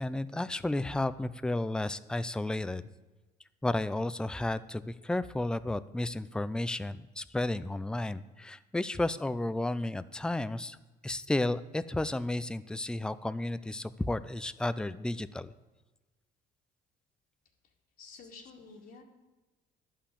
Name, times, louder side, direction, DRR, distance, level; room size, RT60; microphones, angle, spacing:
voice 1, 0.0-2.8 3.6-10.8 11.0-15.5, left 2 dB, 5° left, 14 dB, 0.4 m, -32 dB
voice 2, 18.0-19.0, left 4 dB, 65° left, -2 dB, 2.1 m, -50 dB
11.0 x 5.9 x 8.4 m, 1.2 s
cardioid pair, 110°, 17 cm